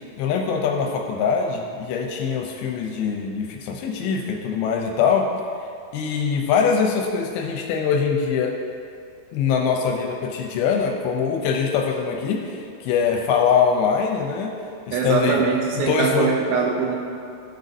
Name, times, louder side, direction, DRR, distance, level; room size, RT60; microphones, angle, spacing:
voice 1, 0.2-5.3 5.9-8.6 9.3-14.5 14.9-15.4 15.9-16.3, left 6 dB, 80° left, 2 dB, 2.4 m, -23 dB
voice 2, 14.9-17.0, right 5 dB, 80° right, 1 dB, 2.4 m, -22 dB
14.0 x 6.5 x 2.6 m, 2.5 s
omnidirectional pair, 4.6 m